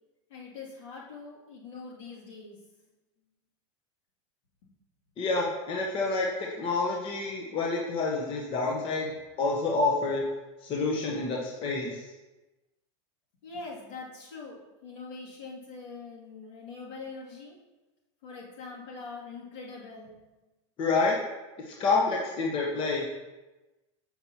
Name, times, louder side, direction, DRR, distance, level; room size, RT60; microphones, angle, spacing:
voice 1, 0.3-2.8 13.4-17.6 18.2-20.2, left 4 dB, 70° left, -5 dB, 2.3 m, -43 dB
voice 2, 5.2-9.1 9.4-10.3 10.6-12.0 20.8-21.2 21.6-23.1, left 3 dB, 35° left, -1 dB, 0.9 m, -28 dB
7.4 x 5.9 x 2.8 m, 1.1 s
supercardioid pair, 135°, 16 cm